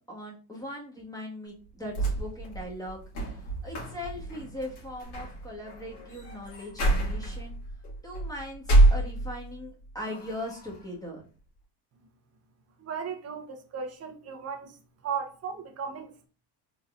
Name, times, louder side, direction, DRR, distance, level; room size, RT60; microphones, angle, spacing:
voice 1, 0.0-7.6 8.0-11.2, left 1 dB, 10° left, 1.7 m, -40 dB
sound 1, 1.7-9.6 10.0-10.8, right 2 dB, 55° left, 2.2 m, -27 dB
voice 2, 12.8-14.8 15.0-16.3, right 6 dB, 30° right, 0.8 m, -36 dB
4.0 x 3.9 x 2.5 m
cardioid pair, 115°, 48 cm